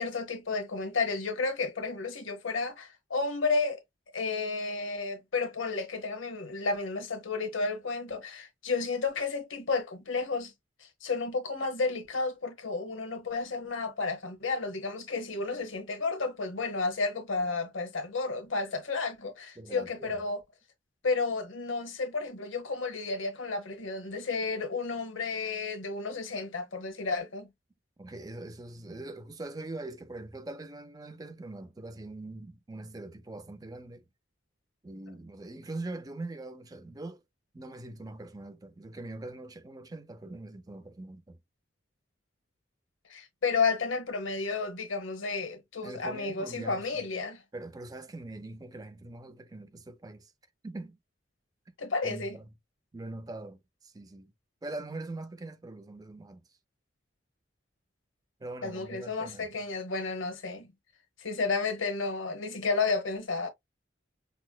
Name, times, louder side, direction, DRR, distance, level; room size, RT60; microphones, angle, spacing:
voice 1, 0.0-3.8 4.1-10.5 10.8-20.4 21.0-27.5 43.1-47.4 51.8-52.4 58.6-60.7 61.2-63.5, left 4 dB, 90° left, 1.1 m, -32 dB
voice 2, 19.6-20.2 28.0-34.1 34.8-37.2 37.5-41.4 45.8-47.1 47.5-50.3 50.6-51.0 52.0-52.5 52.9-54.3 54.6-56.4 58.4-59.6, right 2 dB, 20° right, 0.4 m, -42 dB
5.9 x 2.1 x 2.2 m
head